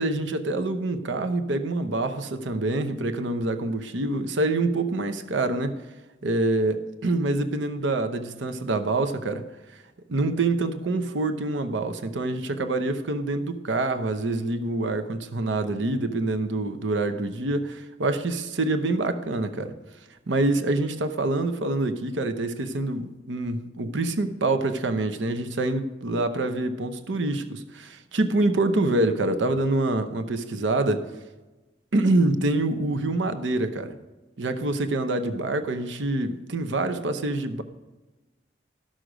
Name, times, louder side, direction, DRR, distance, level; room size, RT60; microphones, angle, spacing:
voice 1, 0.0-5.7 6.2-9.4 9.7-9.8 10.1-19.7 20.3-31.0 31.9-34.0 34.4-37.6, right 2 dB, 85° right, 9 dB, 0.8 m, -26 dB
13.0 x 6.4 x 5.0 m, 1.2 s
head